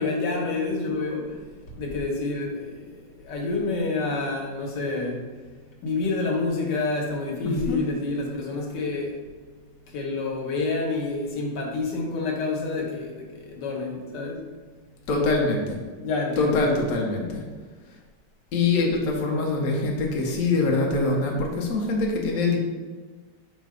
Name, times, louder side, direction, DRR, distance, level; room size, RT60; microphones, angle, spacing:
voice 1, 0.0-1.4 1.7-5.5 5.8-9.2 9.9-14.4 16.0-16.6, left 3 dB, 75° left, 0 dB, 1.5 m, -28 dB
voice 2, 7.4-7.8 15.1-15.8 16.4-17.4 18.5-22.6, left 3 dB, 60° left, -1 dB, 1.0 m, -24 dB
5.0 x 2.2 x 4.8 m, 1.4 s
omnidirectional pair, 1.9 m